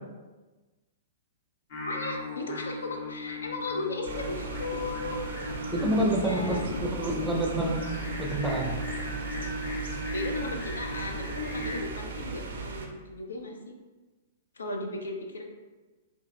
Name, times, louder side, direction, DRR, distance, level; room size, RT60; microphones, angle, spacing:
Singing, 1.7-11.8, left 1 dB, 50° left, 0.8 m, -37 dB
voice 1, 1.8-5.2 6.0-6.6 10.1-13.7 14.5-15.4, left 3 dB, 75° left, 2 dB, 0.4 m, -36 dB
sound 1, 4.0-12.9, right 4 dB, 60° right, 0.4 m, -37 dB
voice 2, 5.7-7.9 8.2-8.8, right 1 dB, 10° right, -1 dB, 0.5 m, -28 dB
sound 2, 6.3-8.7, left 1 dB, 20° left, 0.9 m, -42 dB
3.9 x 2.5 x 2.2 m, 1.2 s
figure-of-eight pair, 110°, 0 cm